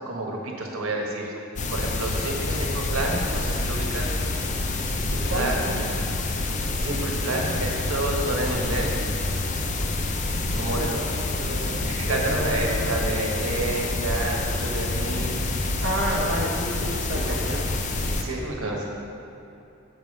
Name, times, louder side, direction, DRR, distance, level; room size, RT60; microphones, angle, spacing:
voice 1, 0.0-1.3 1.7-4.2 4.9-5.6 6.7-9.0 10.5-10.8 11.6-15.4 17.1-17.6 18.2-18.8, right 2 dB, 75° right, -1 dB, 1.2 m, -30 dB
sound 1, 1.6-18.2, left 2 dB, 35° left, 0.5 m, -27 dB
voice 2, 2.4-2.7 5.3-5.8 10.5-13.0 15.8-17.6 18.6-18.8, right 1 dB, 55° right, -5 dB, 0.9 m, -31 dB
7.2 x 5.0 x 6.9 m, 2.9 s
head